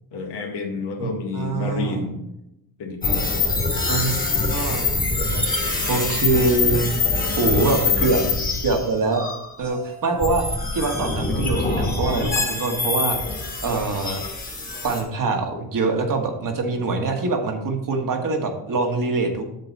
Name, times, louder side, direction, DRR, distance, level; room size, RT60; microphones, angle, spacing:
voice 1, 0.1-2.2 2.8-3.6 5.3-5.8 7.1-8.4, left 3 dB, 75° left, 2 dB, 1.9 m, -31 dB
voice 2, 1.3-2.1 3.9-4.2 4.5-4.9 5.9-6.9 7.4-8.2 8.6-9.3 9.6-10.4 10.7-13.2 13.6-14.2 14.8-19.4, right 3 dB, 50° right, 3 dB, 1.6 m, -24 dB
sound 1, 3.0-15.0, left 3 dB, 20° left, 2.0 m, -24 dB
7.8 x 6.7 x 4.2 m, 0.88 s
cardioid pair, 90°, 41 cm